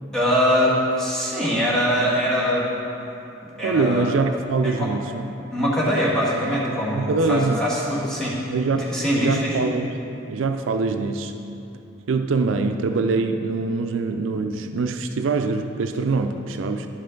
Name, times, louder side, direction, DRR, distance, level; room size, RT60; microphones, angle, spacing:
voice 1, 0.1-2.7 3.6-4.1 4.6-4.9 5.5-8.4 8.8-9.6, equal, 5° left, -8 dB, 1.7 m, -22 dB
voice 2, 3.6-5.3 6.9-7.7 8.5-10.0 10.3-11.3 12.1-16.9, right 4 dB, 85° right, 6 dB, 0.4 m, -24 dB
11.0 x 5.6 x 3.8 m, 2.9 s
head